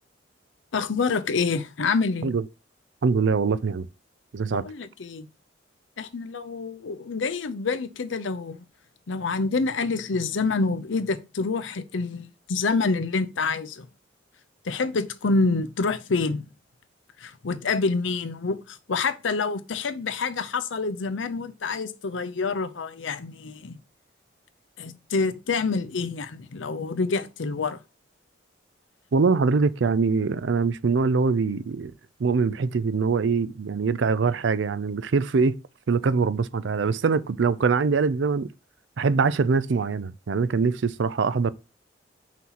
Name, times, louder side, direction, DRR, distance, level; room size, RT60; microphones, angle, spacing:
voice 1, 0.7-2.3 4.5-5.3 6.0-8.6 9.1-13.9 14.6-16.5 17.2-23.8 24.8-27.8, left 4 dB, 90° left, 0.6 m, -27 dB
voice 2, 3.0-3.9 4.3-4.6 29.1-31.9 32.2-35.6 35.9-38.5 39.0-41.5, right 4 dB, 75° right, 0.5 m, -23 dB
5.9 x 2.9 x 5.6 m
head